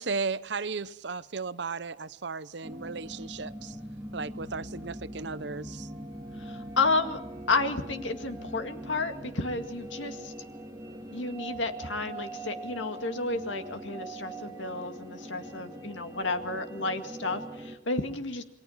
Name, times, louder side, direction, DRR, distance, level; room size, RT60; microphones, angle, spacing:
voice 1, 0.0-3.8 4.1-5.9, right 4 dB, 65° right, 0.8 m, -35 dB
sound 1, 2.6-17.8, right 1 dB, 15° right, 2.5 m, -42 dB
voice 2, 6.4-7.2 7.5-10.3 11.1-18.4, left 3 dB, 80° left, 2.1 m, -31 dB
28.5 x 22.5 x 5.8 m
head